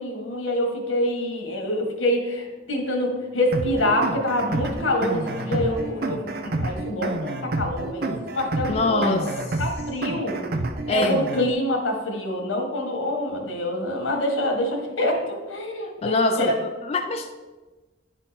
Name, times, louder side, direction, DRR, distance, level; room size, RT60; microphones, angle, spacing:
voice 1, 0.0-6.2 6.4-9.3 9.6-10.5 10.9-16.5, left 1 dB, 90° left, 2 dB, 1.5 m, -26 dB
Bowed string instrument, 2.5-6.5, equal, 15° right, 0.8 m, -40 dB
sound 1, 3.5-11.5, right 2 dB, 50° right, 0.5 m, -29 dB
voice 2, 8.7-9.6 10.9-11.2 16.0-17.3, left 2 dB, 30° left, 5 dB, 0.3 m, -24 dB
10.0 x 3.7 x 4.1 m, 1.2 s
head